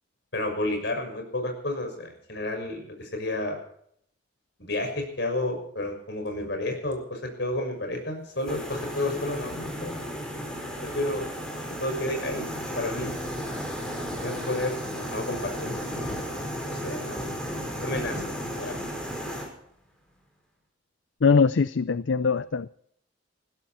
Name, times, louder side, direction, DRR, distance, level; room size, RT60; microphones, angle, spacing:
voice 1, 0.3-3.6 4.6-10.4 10.8-11.3 11.8-13.2 14.2-16.2 16.6-17.4 17.8-18.8, left 1 dB, 65° left, 6.4 m, -31 dB
sound 1, 8.4-19.5, equal, 5° left, 5.3 m, -34 dB
voice 2, 21.2-22.7, left 5 dB, 80° left, 0.5 m, -22 dB
20.5 x 16.0 x 4.4 m
head